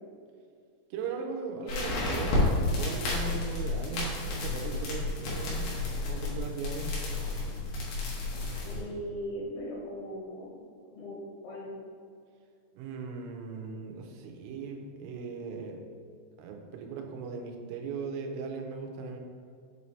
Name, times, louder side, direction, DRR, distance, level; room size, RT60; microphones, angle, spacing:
voice 1, 0.9-5.7 6.1-6.9 12.7-15.8 16.4-19.2, right 5 dB, 85° right, 2 dB, 3.2 m, -38 dB
sound 1, 1.7-8.8, left 2 dB, 70° left, 3.1 m, -31 dB
voice 2, 8.7-10.6 10.9-11.2 11.4-11.7, equal, 85° left, -5 dB, 3.6 m, -38 dB
7.5 x 4.1 x 3.2 m, 2.4 s
omnidirectional pair, 5.6 m